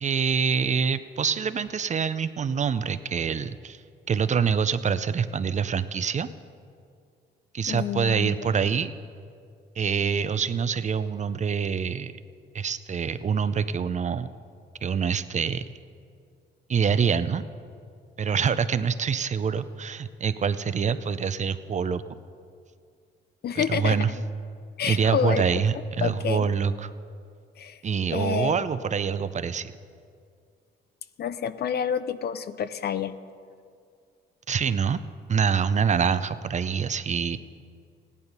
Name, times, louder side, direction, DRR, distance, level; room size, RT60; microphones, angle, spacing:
voice 1, 0.0-3.8 4.1-6.3 7.5-8.9 9.8-12.1 12.5-14.3 14.8-15.6 16.7-17.4 18.2-22.0 23.5-24.1 24.9-26.9 27.8-29.7 34.5-35.0 35.3-37.4, right 6 dB, 35° right, 13 dB, 0.5 m, -25 dB
voice 2, 7.7-8.4 23.4-24.0 24.8-25.6 26.0-26.5 27.6-27.8 28.1-28.6 31.2-33.1, left 8 dB, 55° left, 14 dB, 0.6 m, -28 dB
15.5 x 10.5 x 5.4 m, 2.3 s
cardioid pair, 90°, 20 cm